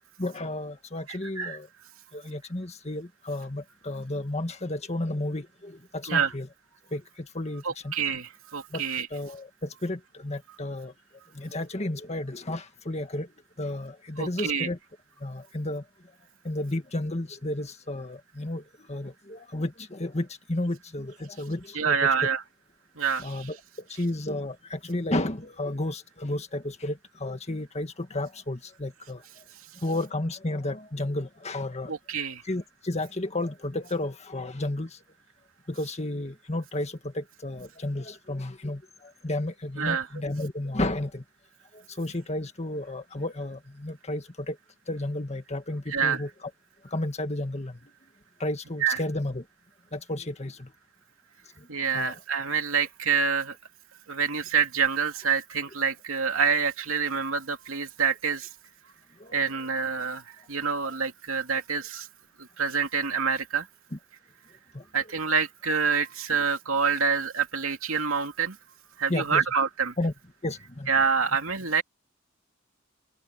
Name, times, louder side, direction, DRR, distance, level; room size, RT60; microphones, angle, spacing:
voice 1, 0.2-1.7 2.1-6.5 6.9-7.9 8.7-8.8 9.1-10.9 11.3-13.3 13.6-14.8 15.2-15.8 16.4-22.1 23.2-23.6 23.9-29.2 29.8-31.9 32.4-35.0 35.7-41.2 41.7-44.6 44.9-46.3 46.9-47.8 48.4-49.4 49.9-50.7 51.6-51.7 51.9-52.1 59.2-59.4 60.8-61.0 63.9-64.0 64.7-64.8 69.1-69.4 70.0-70.1 70.4-70.9, left 1 dB, 30° left, 1.8 m, -32 dB
voice 2, 1.1-1.6 6.1-6.3 7.6-9.1 14.2-14.7 21.7-22.4 23.0-23.5 31.9-32.4 39.8-40.1 45.9-46.2 48.8-49.0 51.7-53.6 54.1-58.5 59.3-62.1 62.4-63.7 64.9-68.6 69.0-70.0 70.9-71.8, right 6 dB, 80° right, 2.8 m, -27 dB
open air
head